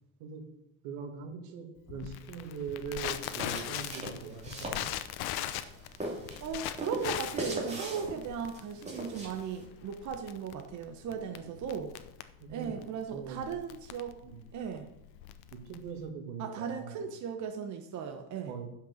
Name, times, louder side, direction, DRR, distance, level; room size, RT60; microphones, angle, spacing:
voice 1, 0.2-0.5 0.8-4.9 7.7-8.2 11.1-11.6 12.4-12.8 13.1-13.4 14.2-14.5 15.5-17.1 18.4-18.7, right 6 dB, 80° right, 4 dB, 2.1 m, -42 dB
Crackle, 1.9-16.1, left 12 dB, 60° left, 0.8 m, -40 dB
sound 1, 3.0-9.6, right 1 dB, 15° right, 2.8 m, -41 dB
voice 2, 6.0-11.9 12.5-14.2 14.5-14.9 16.4-18.5, right 6 dB, 40° right, 4 dB, 1.1 m, -37 dB
11.0 x 5.9 x 6.4 m, 0.84 s
cardioid pair, 125°, 43 cm